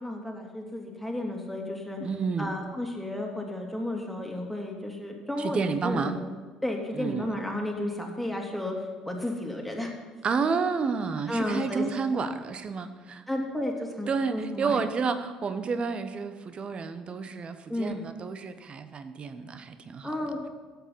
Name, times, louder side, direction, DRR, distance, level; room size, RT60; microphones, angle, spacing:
voice 1, 0.0-2.0 2.4-6.1 6.6-8.7 9.0-9.9 11.3-11.8 13.3-14.8 17.7-18.0 20.0-20.4, left 1 dB, ahead, 0 dB, 2.9 m, -32 dB
voice 2, 2.0-2.5 5.4-6.2 6.9-7.3 10.2-13.2 14.1-20.1, right 5 dB, 35° right, 10 dB, 1.1 m, -30 dB
13.5 x 9.0 x 5.8 m, 1.4 s
figure-of-eight pair, 55°, 3 cm